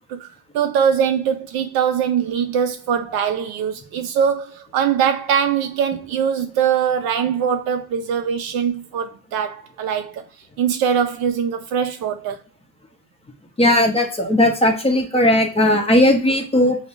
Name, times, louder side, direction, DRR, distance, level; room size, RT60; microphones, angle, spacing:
voice 1, 0.5-10.2 10.6-12.4, right 8 dB, 50° right, 0.5 m, -22 dB
voice 2, 13.6-16.8, left 1 dB, 10° left, 0.7 m, -17 dB
5.2 x 2.1 x 2.4 m
supercardioid pair, 90°, 49 cm